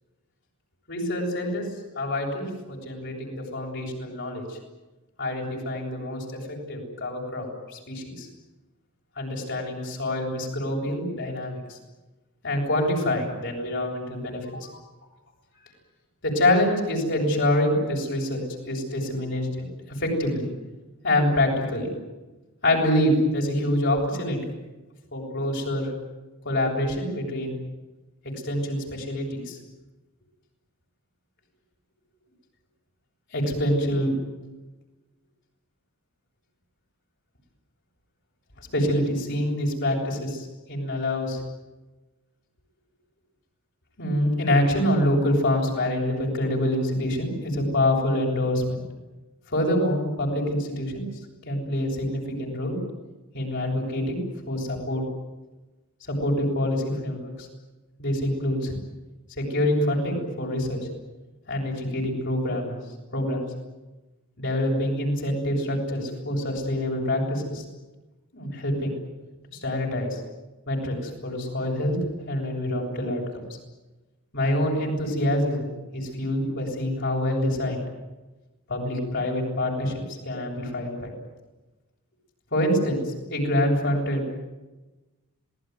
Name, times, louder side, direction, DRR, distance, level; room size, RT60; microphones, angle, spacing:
voice 1, 0.9-4.6 5.2-8.3 9.2-11.8 12.4-14.8 16.2-19.5 19.9-20.4 21.0-21.9 22.6-24.4 25.1-25.9 26.4-27.5 28.2-29.6 33.3-34.1 38.6-41.4 44.0-48.8 49.5-51.1 51.4-52.8 53.3-54.2 54.5-55.0 56.0-57.5 58.0-58.8 59.4-60.8 61.5-62.8 63.1-63.4 64.4-67.6 68.3-68.9 69.5-70.2 70.7-72.0 72.3-73.2 74.3-75.7 75.9-77.8 78.7-81.1 82.5-84.3, left 1 dB, 55° left, -1 dB, 7.8 m, -26 dB
27.0 x 19.5 x 9.6 m, 1.1 s
head